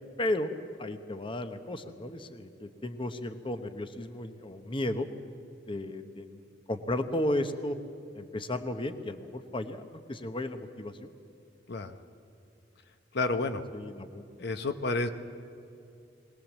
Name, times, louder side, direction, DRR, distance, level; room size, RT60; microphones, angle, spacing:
voice 1, 0.2-0.5 0.8-5.1 5.7-6.4 6.7-7.8 8.1-11.1 13.7-14.2, left 1 dB, 30° left, 9 dB, 0.9 m, -34 dB
voice 2, 13.1-13.6 14.4-15.1, left 2 dB, 65° left, 9 dB, 0.9 m, -30 dB
21.5 x 19.5 x 7.4 m, 2.7 s
head